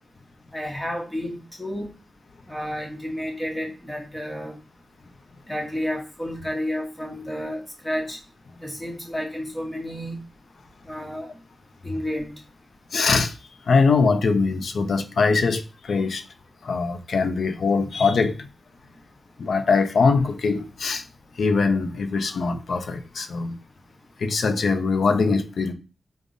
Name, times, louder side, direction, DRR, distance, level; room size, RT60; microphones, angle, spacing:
voice 1, 0.5-1.9 2.5-4.6 5.5-8.2 8.6-10.2 10.8-11.3 11.8-12.3, equal, 10° left, 0.9 m, -31 dB
voice 2, 12.9-13.3 13.7-16.2 16.6-18.5 19.4-21.0 21.4-23.6 24.2-25.7, left 4 dB, 75° left, 0.4 m, -22 dB
5.0 x 2.0 x 2.5 m
wide cardioid pair, 110°, 0 cm